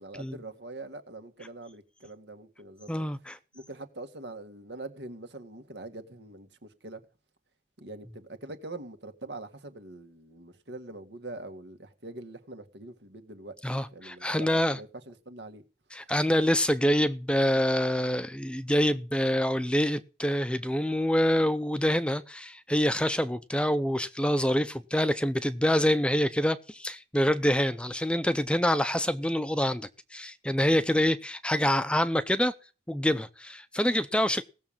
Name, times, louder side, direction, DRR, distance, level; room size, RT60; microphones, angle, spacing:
voice 1, 0.0-3.0 3.5-7.0 7.8-13.6 13.9-15.6 30.9-31.0, right 2 dB, 75° right, 2.1 m, -43 dB
voice 2, 2.9-3.4 13.6-14.8 15.9-32.5 32.9-34.4, equal, 5° left, 0.6 m, -26 dB
17.5 x 7.1 x 7.4 m
head